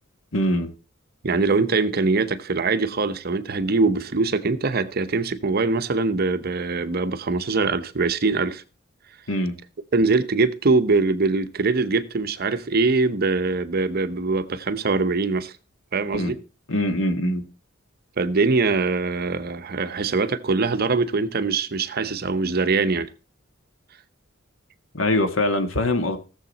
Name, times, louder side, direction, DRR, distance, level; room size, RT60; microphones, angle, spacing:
voice 1, 0.3-0.7 9.3-9.5 16.1-16.3 16.7-17.4 24.9-26.2, left 1 dB, 80° left, 1.6 m, -23 dB
voice 2, 1.2-8.6 9.9-15.5 15.9-16.4 18.2-23.1, right 3 dB, 50° right, 0.8 m, -22 dB
16.5 x 7.2 x 4.1 m
head